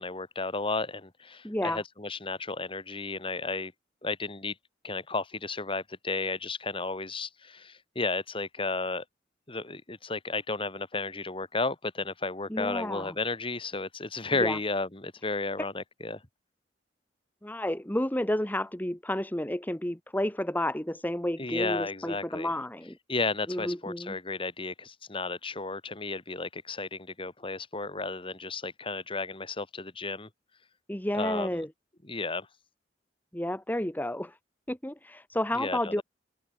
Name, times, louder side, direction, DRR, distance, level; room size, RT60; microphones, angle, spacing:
voice 1, 0.0-3.7 4.0-4.5 4.8-9.0 9.5-16.2 21.4-22.5 23.1-30.3 31.1-31.6 32.0-32.5 35.5-36.0, left 3 dB, 30° left, 2.9 m, -33 dB
voice 2, 1.4-1.8 12.5-13.1 14.4-14.6 17.4-23.0 23.5-24.2 30.9-31.7 33.3-34.4 34.7-36.0, left 1 dB, 10° left, 1.5 m, -31 dB
head